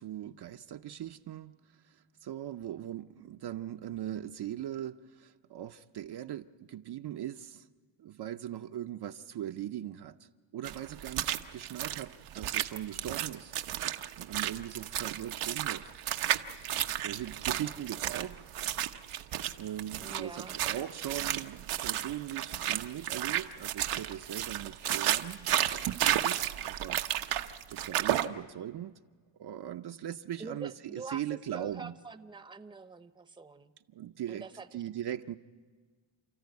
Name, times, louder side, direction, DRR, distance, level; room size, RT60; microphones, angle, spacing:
voice 1, 0.0-1.6 1.9-7.7 8.0-13.5 14.2-15.9 17.0-18.4 19.6-29.0 29.4-31.9 33.9-34.5 34.7-35.4, right 11 dB, 55° right, 7 dB, 0.7 m, -40 dB
sound 1, 10.6-28.3, right 12 dB, 90° right, 1.0 m, -32 dB
voice 2, 20.0-20.6 30.4-33.7 34.3-34.8, right 4 dB, 10° right, 11 dB, 0.8 m, -45 dB
30.0 x 14.0 x 9.4 m, 1.5 s
cardioid pair, 105°, 49 cm